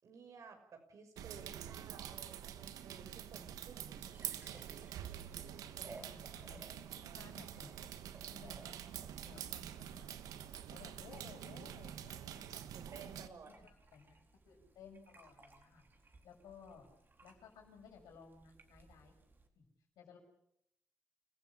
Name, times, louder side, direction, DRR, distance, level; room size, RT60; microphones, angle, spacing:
voice 1, 0.0-4.8 5.8-6.4 7.0-7.3 12.7-13.7, right 5 dB, 65° right, 5 dB, 6.0 m, -56 dB
sound 1, 1.2-13.3, right 10 dB, 85° right, 1.4 m, -47 dB
sound 2, 3.3-19.5, right 2 dB, 35° right, 4.1 m, -61 dB
voice 2, 6.0-8.0 8.3-8.8 9.2-10.4 10.7-13.4 13.6-15.8 16.2-16.9 17.2-19.1 19.5-19.6 20.0-20.2, left 6 dB, 90° left, 3 dB, 6.3 m, -58 dB
28.5 x 15.5 x 8.6 m, 0.75 s
cardioid pair, 60°, 6 cm